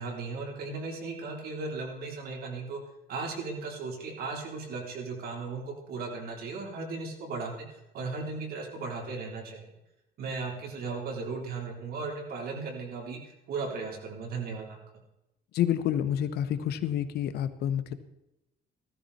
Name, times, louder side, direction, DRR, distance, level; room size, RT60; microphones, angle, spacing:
voice 1, 0.0-2.8 3.1-7.5 7.9-9.6 10.2-13.2 13.5-14.8, right 4 dB, 65° right, 1 dB, 3.7 m, -36 dB
voice 2, 15.5-17.9, left 10 dB, 75° left, 11 dB, 1.1 m, -28 dB
15.5 x 13.5 x 4.2 m, 0.90 s
cardioid pair, 110°, 17 cm